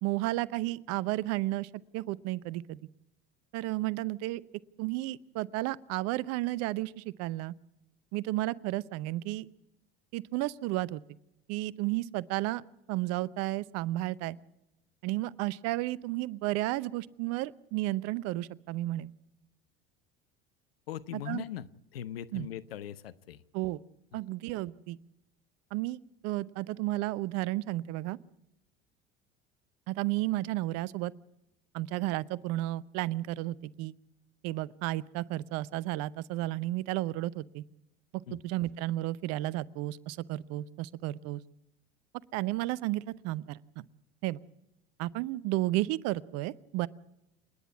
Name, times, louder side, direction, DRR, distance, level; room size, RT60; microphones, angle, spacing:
voice 1, 0.0-2.8 3.5-4.4 4.8-7.5 8.1-9.5 10.1-11.0 11.5-12.6 12.9-14.4 15.0-19.1 21.1-21.4 22.3-22.5 23.5-23.8 24.1-25.0 25.7-28.2 29.9-31.1 31.7-33.9 34.4-37.6 38.3-41.4 42.3-43.9 44.2-44.4 45.0-46.9, right 17 dB, 60° right, 20 dB, 0.8 m, -32 dB
voice 2, 20.9-23.4 38.3-38.4, left 10 dB, 85° left, 17 dB, 0.8 m, -40 dB
28.5 x 10.5 x 9.5 m, 0.86 s
hypercardioid pair, 70°, 29 cm